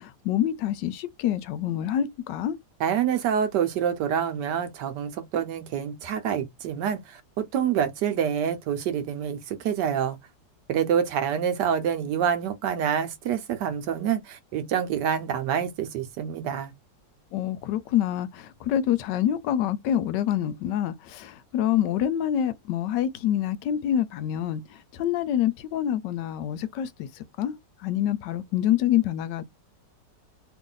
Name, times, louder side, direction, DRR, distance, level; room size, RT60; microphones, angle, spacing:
voice 1, 0.0-2.6 17.3-27.1 27.4-27.5 27.8-29.4, left 11 dB, 80° left, 1.2 m, -26 dB
voice 2, 2.8-10.2 10.7-16.7, right 8 dB, 75° right, 1.3 m, -27 dB
3.1 x 2.6 x 3.8 m
omnidirectional pair, 2.0 m